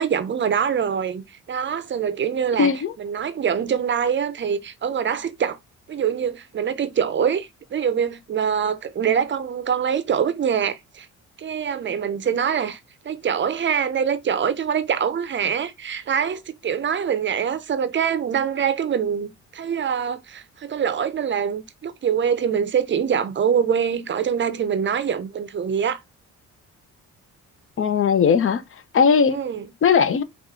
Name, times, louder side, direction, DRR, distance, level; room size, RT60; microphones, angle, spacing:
voice 1, 0.0-2.7 3.0-5.6 5.9-11.1 11.4-12.8 13.0-26.0 29.3-29.7, right 7 dB, 40° right, 0.6 m, -24 dB
voice 2, 2.6-2.9 27.8-28.6 28.9-29.4 29.8-30.2, left 6 dB, 45° left, 0.7 m, -18 dB
4.7 x 2.5 x 3.6 m
cardioid pair, 90°, 30 cm